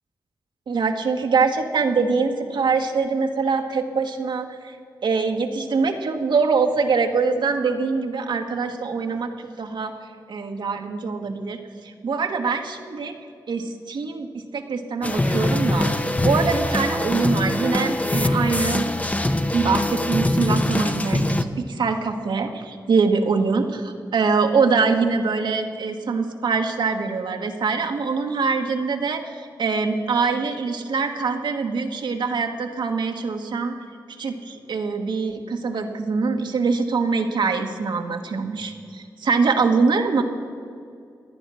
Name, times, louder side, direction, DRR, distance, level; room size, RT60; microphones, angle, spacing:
voice 1, 0.7-4.8 5.0-9.3 9.6-9.9 10.3-11.6 12.0-13.1 13.5-14.3 14.5-15.9 16.2-18.9 19.5-33.7 34.2-40.2, right 4 dB, 80° right, 4 dB, 1.3 m, -23 dB
sound 1, 15.0-21.4, left 1 dB, 20° left, 0.8 m, -23 dB
16.0 x 10.0 x 6.2 m, 2.4 s
cardioid pair, 60°, 8 cm